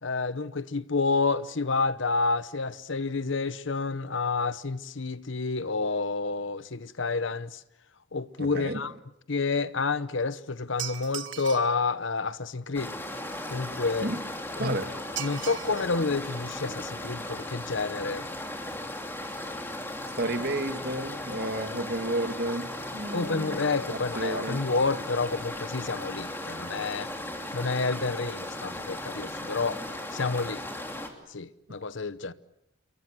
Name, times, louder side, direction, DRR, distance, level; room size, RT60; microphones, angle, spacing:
voice 1, 0.0-7.6 8.1-8.9 9.3-12.9 13.5-14.1 14.6-14.8 15.2-18.3 23.1-27.1 27.5-29.8 30.1-30.6 31.3-32.3, left 4 dB, 70° left, 0.9 m, -29 dB
voice 2, 8.4-8.8 14.0-14.2 14.5-14.9 19.3-19.6 20.2-24.6, right 1 dB, 50° right, 2.4 m, -32 dB
sound 1, 10.8-11.8 15.2-15.9 16.3-16.4 17.2-17.3 17.6-17.7 18.0-18.2 18.4-18.5, right 11 dB, 65° right, 1.6 m, -38 dB
sound 2, 12.7-31.1, left 1 dB, 10° left, 3.0 m, -37 dB
28.5 x 23.0 x 7.7 m
head